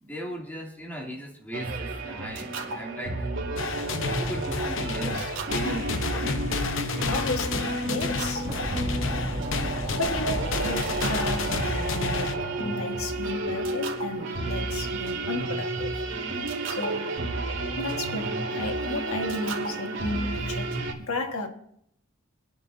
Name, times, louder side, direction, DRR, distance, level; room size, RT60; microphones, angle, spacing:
voice 1, 0.0-3.3 4.2-7.2, right 1 dB, 10° left, 2.7 m, -38 dB
sound 1, 1.5-20.9, right 2 dB, 60° right, 3.0 m, -31 dB
sound 2, 3.6-12.4, left 4 dB, 60° left, 0.8 m, -31 dB
voice 2, 7.1-8.5 9.6-16.0 16.7-17.3 17.8-21.5, left 2 dB, 75° left, 1.5 m, -34 dB
Boom, 8.4-13.2 13.4-13.5 14.7-14.8, equal, 25° right, 2.2 m, -37 dB
27.0 x 10.5 x 2.7 m
head